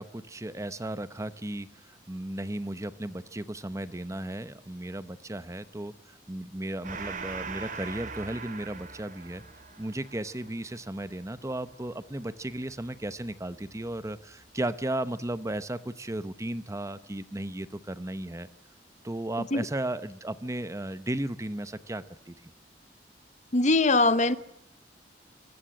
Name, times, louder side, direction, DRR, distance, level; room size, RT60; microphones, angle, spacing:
voice 1, 0.0-9.4 9.8-18.5 19.0-22.3, right 1 dB, 20° right, 14 dB, 0.9 m, -35 dB
Gong, 6.8-13.8, right 5 dB, 50° right, 2.7 m, -42 dB
voice 2, 23.5-24.4, left 2 dB, 45° left, 14 dB, 1.1 m, -22 dB
25.0 x 18.0 x 7.7 m, 0.82 s
head